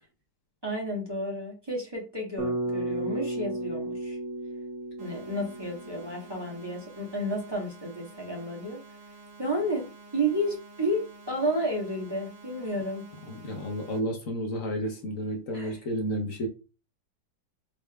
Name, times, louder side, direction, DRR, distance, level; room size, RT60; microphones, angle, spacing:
voice 1, 0.6-4.2 5.0-8.8 9.4-9.8 10.1-13.0 15.5-15.7, right 1 dB, 20° right, 0.8 m, -31 dB
Bass guitar, 2.4-6.5, right 1 dB, 15° left, 0.8 m, -34 dB
sound 1, 5.0-14.0, right 3 dB, 45° right, 2.1 m, -50 dB
voice 2, 13.2-16.5, equal, 60° left, 0.9 m, -31 dB
4.1 x 3.3 x 2.2 m
omnidirectional pair, 2.0 m